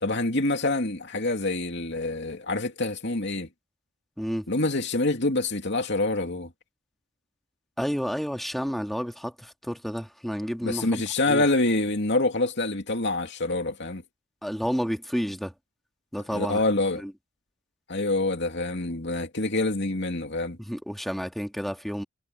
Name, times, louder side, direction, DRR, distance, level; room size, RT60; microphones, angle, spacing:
voice 1, 0.0-3.5 4.5-6.5 10.6-14.0 16.3-17.0 17.9-20.6, left 2 dB, 60° left, 2.7 m, -26 dB
voice 2, 4.2-4.5 7.8-11.5 14.4-15.5 16.1-16.6 16.9-17.1 20.6-22.0, equal, ahead, 1.9 m, -30 dB
head